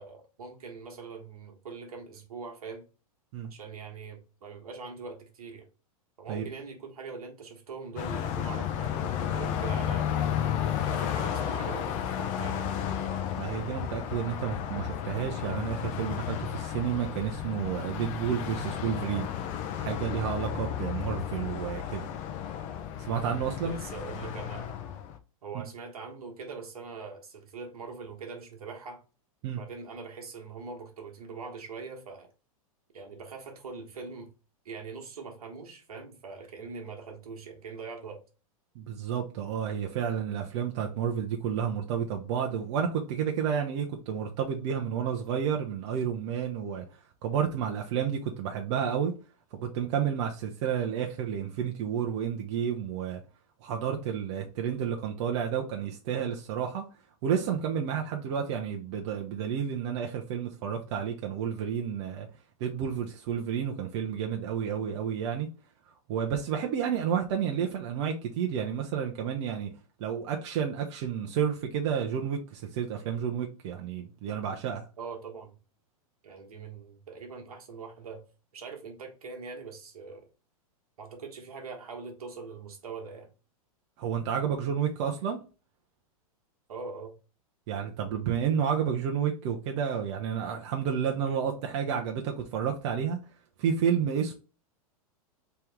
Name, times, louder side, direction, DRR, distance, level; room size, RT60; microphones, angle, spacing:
voice 1, 0.0-2.8 3.5-5.7 6.2-10.2 10.9-12.7 23.2-23.4 23.6-24.8 25.4-29.0 29.6-32.3 32.9-34.3 34.6-38.2 75.0-75.6 76.2-78.2 78.5-80.3 81.0-83.3 86.7-87.1, right 4 dB, 80° right, 1.3 m, -42 dB
Car passing by, 8.0-25.2, left 9 dB, 40° left, 0.6 m, -33 dB
voice 2, 13.4-19.3 19.8-22.1 23.0-23.8 25.5-25.7 29.4-29.6 38.8-49.1 49.5-53.2 53.6-56.8 57.2-62.3 62.6-65.5 66.1-69.7 70.0-74.8 84.0-85.4 87.7-93.2 93.6-94.3, right 8 dB, 50° right, 0.7 m, -31 dB
3.4 x 3.0 x 3.4 m
hypercardioid pair, 110°, 19 cm